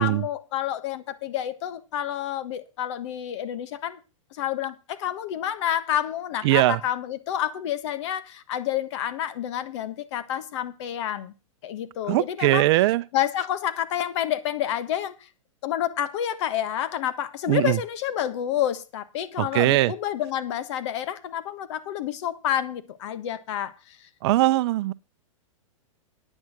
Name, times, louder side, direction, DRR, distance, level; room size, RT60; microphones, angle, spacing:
voice 1, 0.0-4.0 4.4-11.3 11.6-12.6 13.1-15.1 15.6-24.0, left 11 dB, 60° left, 1.4 m, -29 dB
voice 2, 6.4-6.8 12.1-13.0 17.5-17.8 19.4-19.9 24.2-24.9, right 17 dB, 50° right, 0.6 m, -20 dB
9.7 x 8.9 x 6.0 m
hypercardioid pair, 130°, 17 cm